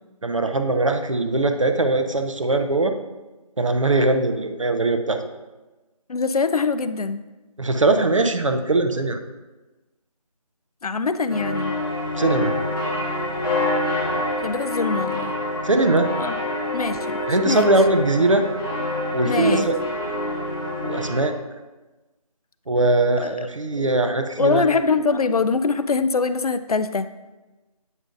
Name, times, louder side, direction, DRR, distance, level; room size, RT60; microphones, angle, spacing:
voice 1, 0.2-2.9 3.6-5.2 7.6-9.2 12.1-12.5 15.6-16.1 17.3-18.4 19.1-19.7 20.8-21.3 22.7-24.6, right 2 dB, 55° right, 6 dB, 0.6 m, -20 dB
voice 2, 6.1-7.2 10.8-11.8 14.4-15.3 16.2-16.4 16.7-17.7 19.2-19.7 23.2-23.5 23.8-23.9 24.4-27.1, left 4 dB, 70° left, 12 dB, 0.4 m, -23 dB
sound 1, 11.3-21.2, left 1 dB, 35° left, 1.8 m, -26 dB
8.1 x 5.1 x 2.5 m, 1.1 s
figure-of-eight pair, 175°, 20 cm